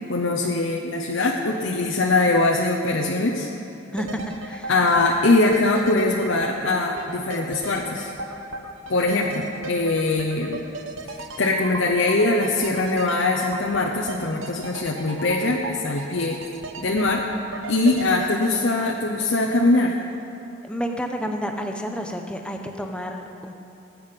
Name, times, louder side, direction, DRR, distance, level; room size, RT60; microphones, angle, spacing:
voice 1, 0.1-3.5 4.7-8.1 8.9-10.6 11.4-16.4 16.8-17.3 17.7-20.0, left 2 dB, 75° left, -1 dB, 0.9 m, -22 dB
voice 2, 3.9-4.7 20.6-23.5, equal, 5° left, 3 dB, 0.8 m, -30 dB
sound 1, 4.0-19.9 20.2-20.3, right 2 dB, 80° right, 1.0 m, -37 dB
19.5 x 8.7 x 5.3 m, 2.8 s
head